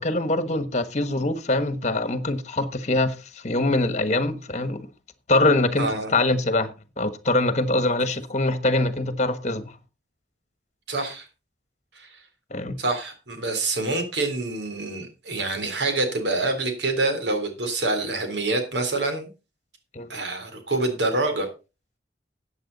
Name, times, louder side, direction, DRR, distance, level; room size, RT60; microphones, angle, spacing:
voice 1, 0.0-3.2 3.4-4.9 5.3-6.7 7.0-9.6 12.5-12.8 19.9-20.1, left 2 dB, 40° left, 1.4 m, -23 dB
voice 2, 5.8-6.1 10.9-11.3 12.0-12.2 12.8-19.3 20.1-21.5, right 2 dB, 80° right, 3.6 m, -26 dB
14.0 x 8.9 x 4.0 m
head